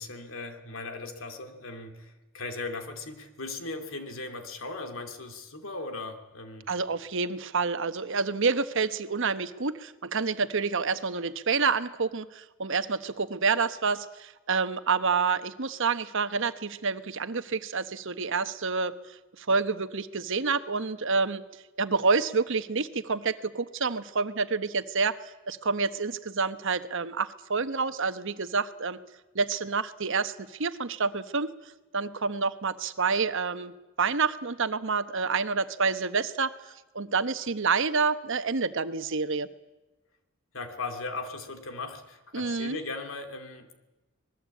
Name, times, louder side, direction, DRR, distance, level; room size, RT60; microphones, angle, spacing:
voice 1, 0.0-6.7 40.5-43.7, left 3 dB, 70° left, 6 dB, 2.8 m, -38 dB
voice 2, 6.7-18.9 19.4-21.4 21.8-29.0 29.3-31.5 31.9-39.5 42.3-42.8, right 4 dB, 65° right, 11 dB, 1.1 m, -28 dB
25.5 x 20.0 x 8.5 m, 1.1 s
head